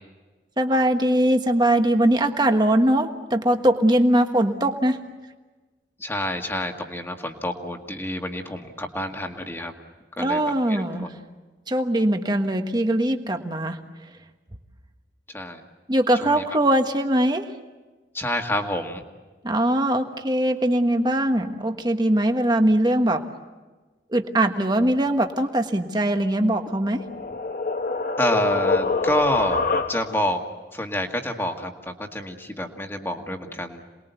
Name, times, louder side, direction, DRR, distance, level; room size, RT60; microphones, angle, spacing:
voice 1, 0.6-5.0 10.2-11.2 11.7-13.8 15.9-17.5 19.4-23.2 24.1-27.0, right 1 dB, 25° right, 6 dB, 1.4 m, -21 dB
voice 2, 6.0-9.7 10.2-10.4 10.7-11.1 15.3-15.6 16.2-16.4 18.1-19.0 28.2-30.4 30.7-33.8, left 1 dB, 15° left, 3 dB, 1.9 m, -28 dB
sound 1, 26.6-30.3, left 3 dB, 50° left, 1.0 m, -26 dB
28.0 x 20.5 x 8.2 m, 1.2 s
head